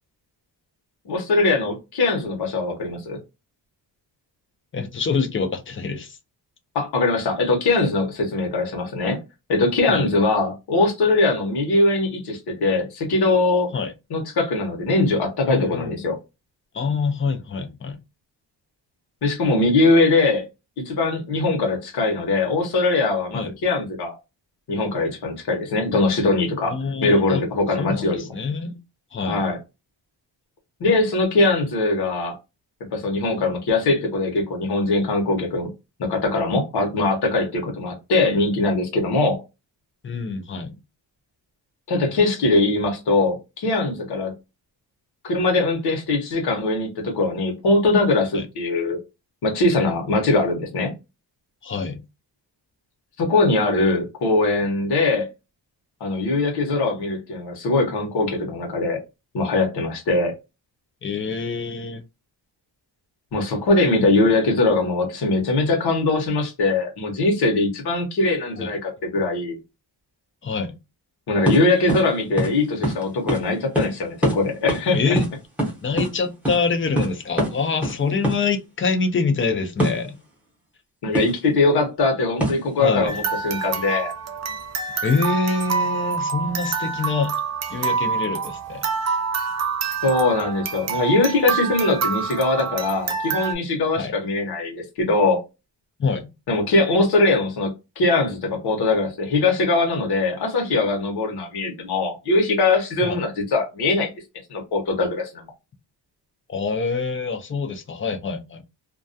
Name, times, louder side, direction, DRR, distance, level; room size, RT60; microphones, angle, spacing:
voice 1, 1.1-3.2 6.7-9.2 9.5-13.7 14.1-16.2 19.2-20.4 20.8-24.2 24.7-28.3 29.2-29.6 30.8-32.3 32.9-35.7 36.0-39.4 41.9-44.3 45.2-49.0 49.4-50.9 53.2-55.3 56.0-59.0 59.3-60.3 63.3-69.6 71.3-75.2 81.0-84.1 90.0-95.4 96.5-97.7 98.0-104.1 104.5-105.4, left 2 dB, 65° left, 0.9 m, -21 dB
voice 2, 4.7-6.2 9.9-10.1 13.7-13.9 15.5-16.0 16.7-18.0 23.3-23.5 26.7-27.4 27.8-28.8 29.1-29.4 40.0-40.8 48.3-48.5 51.6-52.0 61.0-62.0 68.6-68.7 70.4-70.8 74.9-75.3 75.8-80.2 82.8-83.1 85.0-87.3 87.7-88.9 94.0-94.2 96.0-96.3 103.0-103.2 106.5-108.6, left 4 dB, 30° left, 0.4 m, -25 dB
sound 1, 71.4-71.6 71.9-72.0 72.4-72.5 72.8-73.0 73.3-73.4 73.7-73.9 74.2-74.4 74.7-74.8 75.1-76.1 76.4-76.6 77.0-77.1 77.4-77.5 77.8-78.0 78.2-78.4 79.8-80.0 81.1-81.3 82.4-82.7, right 1 dB, 5° right, 0.7 m, -23 dB
sound 2, 83.1-93.6, right 6 dB, 40° right, 0.4 m, -27 dB
2.3 x 2.2 x 2.5 m
wide cardioid pair, 170°, 43 cm